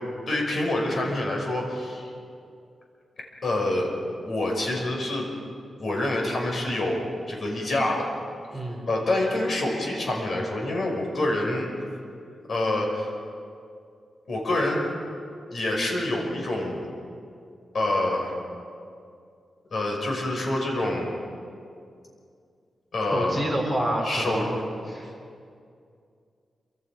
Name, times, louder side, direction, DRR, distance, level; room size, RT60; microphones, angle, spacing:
voice 1, 0.3-2.1 3.4-3.9 4.2-5.3 5.8-8.1 8.9-11.7 12.5-13.1 14.3-14.9 15.5-16.8 17.7-18.3 19.7-21.1 22.9-23.4 24.0-24.5 25.0-25.1, left 1 dB, 50° left, 0 dB, 5.7 m, -26 dB
voice 2, 8.5-8.9 23.1-24.6 24.9-25.1, right 1 dB, 10° left, -1 dB, 3.7 m, -28 dB
27.5 x 25.5 x 5.1 m, 2.4 s
wide cardioid pair, 170°, 0 cm